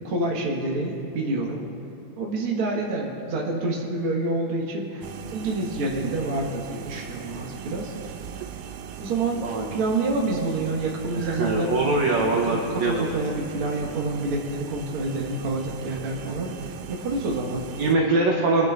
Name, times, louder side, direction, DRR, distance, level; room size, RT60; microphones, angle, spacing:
voice 1, 0.0-1.7 2.2-7.9 9.0-11.7 12.5-17.6, right 2 dB, 45° right, -2 dB, 2.1 m, -28 dB
sound 1, 5.0-17.9, right 9 dB, 85° right, 2.4 m, -39 dB
voice 2, 9.4-9.7 11.1-13.1 17.7-18.7, right 2 dB, 65° right, -1 dB, 1.9 m, -23 dB
25.5 x 11.0 x 2.6 m, 2.9 s
omnidirectional pair, 4.1 m